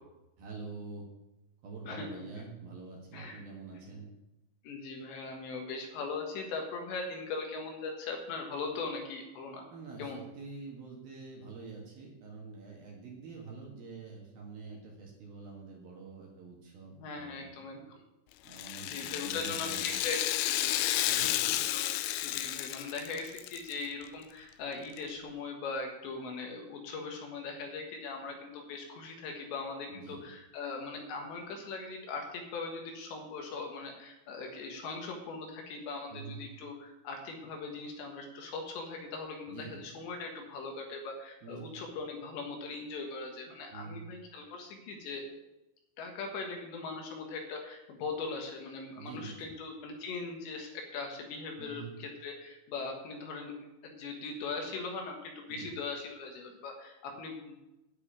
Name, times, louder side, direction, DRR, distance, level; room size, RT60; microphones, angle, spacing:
voice 1, 0.4-1.1 1.6-4.1 9.7-17.6 18.4-20.0 21.1-21.6 29.9-30.2 36.1-36.4 39.5-39.8 41.4-41.6 43.7-44.1 49.0-49.5 51.6-51.9 55.5-55.7, right 4 dB, 60° right, -1 dB, 2.9 m, -46 dB
voice 2, 1.9-2.2 3.1-3.4 4.6-9.7 10.0-10.2 16.9-18.0 18.8-21.1 21.7-21.9 22.2-45.2 46.0-53.5 53.8-57.6, left 4 dB, 70° left, 2 dB, 3.4 m, -40 dB
Rattle (instrument), 18.5-23.7 24.0-24.1 25.0-25.1, left 14 dB, 85° left, 2.5 m, -32 dB
10.0 x 6.2 x 8.8 m, 0.96 s
omnidirectional pair, 5.7 m